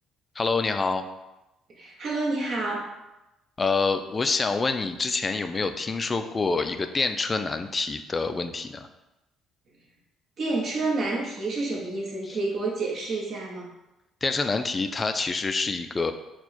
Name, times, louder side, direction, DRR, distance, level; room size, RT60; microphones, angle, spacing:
voice 1, 0.4-1.1 3.6-8.9 12.3-12.4 14.2-16.1, left 4 dB, 30° left, 8 dB, 0.3 m, -26 dB
voice 2, 1.8-2.9 10.4-13.7, right 2 dB, 50° right, -2 dB, 1.0 m, -29 dB
4.4 x 2.2 x 4.2 m, 0.97 s
cardioid pair, 90°, 0 cm